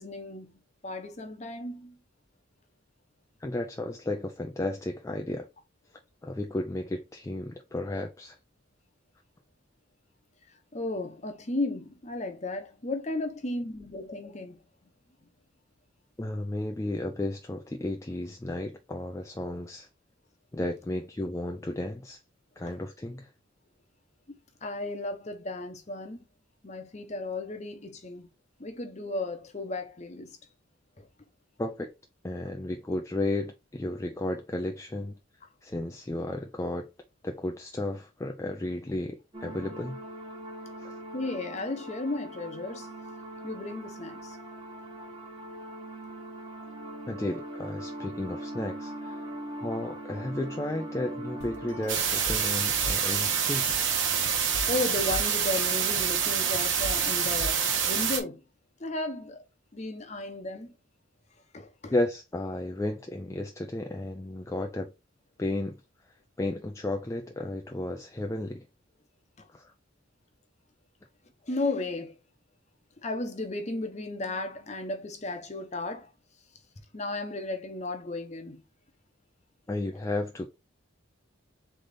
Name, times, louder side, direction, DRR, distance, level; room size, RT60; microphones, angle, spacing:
voice 1, 0.0-2.0 10.7-14.6 22.6-22.7 24.3-26.2 26.6-28.3 28.6-30.4 31.0-31.1 41.1-42.9 43.4-44.4 54.7-58.4 58.8-59.4 59.7-60.7 61.5-61.9 69.4-69.5 71.5-72.1 73.0-76.1 76.9-78.6, left 2 dB, 35° left, 0.8 m, -34 dB
voice 2, 3.4-5.5 6.2-8.4 16.2-19.9 20.5-22.2 22.6-23.3 31.6-31.9 32.2-35.2 35.6-36.9 37.2-40.0 40.8-40.9 47.1-49.2 49.6-53.7 61.9-64.9 65.4-65.8 66.0-68.7 69.5-69.7 79.7-80.5, left 1 dB, 15° left, 0.3 m, -33 dB
sound 1, 39.3-51.9, right 1 dB, 25° right, 1.0 m, -41 dB
sound 2, 51.4-58.3, left 2 dB, 65° left, 0.9 m, -42 dB
sound 3, 51.9-58.2, right 7 dB, 65° right, 1.2 m, -27 dB
3.8 x 3.4 x 3.7 m
head